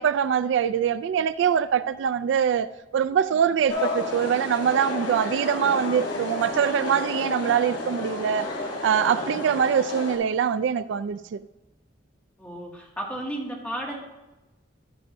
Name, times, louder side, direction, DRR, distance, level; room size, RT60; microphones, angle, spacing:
voice 1, 0.0-2.7 2.9-8.5 8.8-11.4, right 8 dB, 75° right, 0.3 m, -23 dB
sound 1, 3.7-10.2, left 2 dB, 85° left, 3.3 m, -31 dB
voice 2, 12.4-13.9, right 1 dB, 5° left, 2.0 m, -33 dB
11.5 x 10.5 x 2.6 m
head